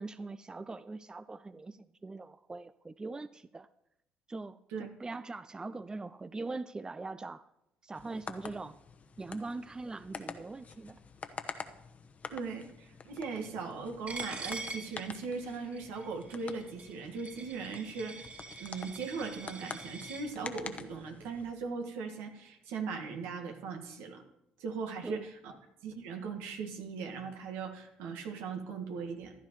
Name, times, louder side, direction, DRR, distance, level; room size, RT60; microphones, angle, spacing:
voice 1, 0.0-3.7 4.3-7.4 7.8-8.8 9.2-11.0 25.0-25.2, right 3 dB, 20° right, 15 dB, 0.4 m, -42 dB
sound 1, 7.9-21.5, left 5 dB, 40° left, 1.0 m, -47 dB
voice 2, 12.3-18.2 18.6-24.2 24.6-25.5 25.8-29.3, right 4 dB, 80° right, 4 dB, 1.7 m, -39 dB
Coin (dropping), 14.1-20.2, right 3 dB, 45° right, 4.7 m, -44 dB
15.0 x 11.5 x 3.1 m, 0.82 s
supercardioid pair, 65°, 4 cm